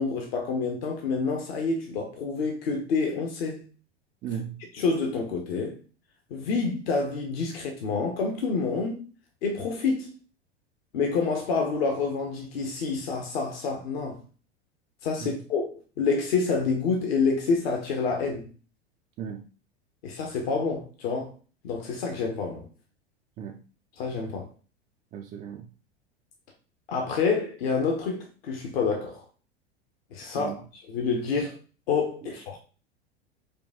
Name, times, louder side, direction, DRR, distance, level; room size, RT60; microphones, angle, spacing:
voice 1, 0.0-3.7 4.7-5.8 6.3-9.0 9.4-10.1 10.9-14.2 15.0-18.5 20.0-21.3 21.6-22.7 24.0-24.5 26.9-29.2 30.1-30.6 30.9-31.6 31.9-32.6, left 4 dB, 60° left, 1.0 m, -28 dB
voice 2, 4.2-4.6 15.2-15.4 19.2-19.5 23.4-23.6 25.1-25.7 30.3-30.6, right 8 dB, 25° right, 0.4 m, -36 dB
5.0 x 2.3 x 3.4 m
figure-of-eight pair, 85°, 33 cm